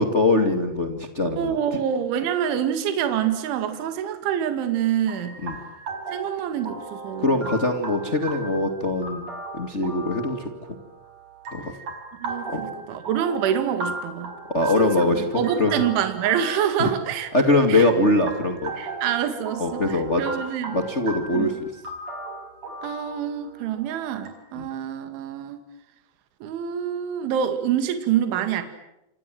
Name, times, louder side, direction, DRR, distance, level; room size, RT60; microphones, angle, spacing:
voice 1, 0.0-1.6 5.4-5.5 7.2-10.5 11.5-11.7 12.5-12.6 14.5-15.7 16.8-16.9 17.3-18.9 19.6-20.4 20.7-21.7 24.5-24.7, left 2 dB, 65° left, 5 dB, 0.7 m, -22 dB
voice 2, 1.4-5.4 6.1-7.4 12.2-14.3 14.8-17.3 17.7-17.8 18.8-20.8 21.3-21.5 22.8-25.6 26.4-28.6, right 9 dB, 70° right, 8 dB, 4.5 m, -26 dB
sound 1, 5.1-24.3, right 2 dB, 35° right, 5.8 m, -37 dB
28.5 x 27.0 x 7.8 m, 0.88 s
omnidirectional pair, 5.7 m